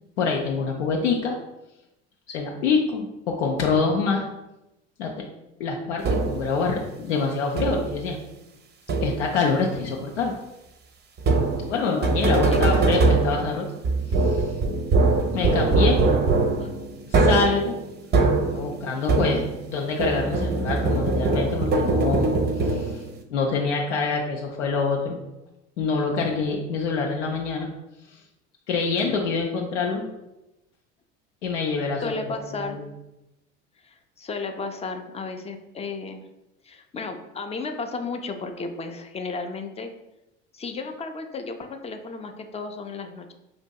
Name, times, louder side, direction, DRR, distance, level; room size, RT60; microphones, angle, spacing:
voice 1, 0.2-1.3 2.3-4.2 5.0-5.1 5.6-8.2 9.0-10.3 11.7-13.7 14.1-14.5 15.3-16.0 17.1-17.8 18.5-22.3 22.6-23.0 23.3-25.2 25.8-27.7 28.7-30.0 31.4-32.1 32.5-32.9, left 4 dB, 85° left, 0 dB, 0.6 m, -26 dB
sound 1, 6.0-6.6 7.6-8.0 8.9-9.4 11.2-19.7 20.0-23.2, right 3 dB, 30° right, 0.5 m, -22 dB
voice 2, 12.4-13.0 16.6-16.7 32.0-32.8 33.8-36.2 36.6-39.9 40.5-43.3, left 3 dB, 20° left, 6 dB, 0.4 m, -33 dB
5.0 x 2.6 x 2.2 m, 0.92 s
hypercardioid pair, 85°, 34 cm